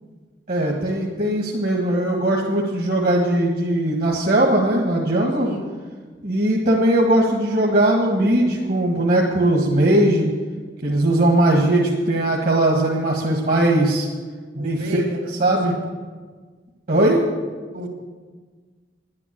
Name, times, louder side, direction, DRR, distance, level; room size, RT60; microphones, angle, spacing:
voice 1, 0.5-5.5 6.2-10.3 10.8-14.1 14.5-15.0 15.4-15.7 16.9-17.2, right 1 dB, 55° right, -2 dB, 1.6 m, -19 dB
voice 2, 5.4-5.7 11.0-11.7 14.5-15.8 17.7-17.9, left 1 dB, 70° right, 1 dB, 2.8 m, -32 dB
10.5 x 10.5 x 7.5 m, 1.5 s
head